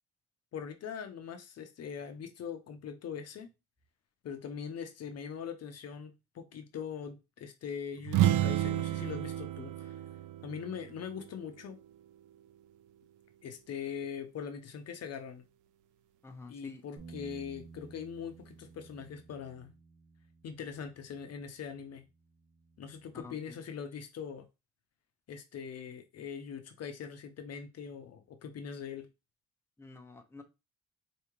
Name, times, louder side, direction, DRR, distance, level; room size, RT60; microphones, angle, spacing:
voice 1, 0.5-3.5 4.2-10.0 10.4-11.8 13.4-15.4 16.5-19.7 20.4-22.0 22.8-24.4 25.3-29.1, left 7 dB, 55° left, 0.7 m, -42 dB
sound 1, 8.0-11.8, right 13 dB, 80° right, 0.5 m, -31 dB
voice 2, 16.2-16.8 23.1-23.6 29.8-30.4, left 3 dB, 10° left, 0.8 m, -49 dB
Bass guitar, 17.0-23.2, right 4 dB, 55° right, 1.2 m, -54 dB
4.7 x 2.8 x 3.0 m
cardioid pair, 90°, 30 cm